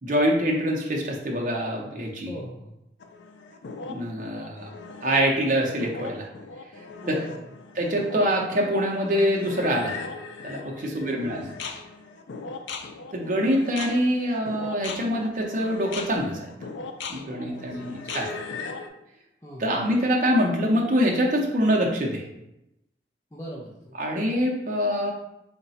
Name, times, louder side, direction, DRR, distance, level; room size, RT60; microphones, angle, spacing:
voice 1, 0.0-2.3 3.9-4.7 5.0-6.3 7.1-7.2 7.8-10.0 10.4-11.4 13.1-16.5 17.1-18.3 19.6-22.3 24.0-25.1, equal, 45° right, -1 dB, 0.6 m, -25 dB
voice 2, 2.2-2.7 7.0-7.5 10.7-11.7 17.4-17.9 19.4-19.9 23.3-24.0, equal, 15° left, -5 dB, 0.4 m, -40 dB
sound 1, 3.0-18.9, left 4 dB, 90° left, 0.4 m, -38 dB
3.9 x 2.2 x 4.0 m, 0.87 s
head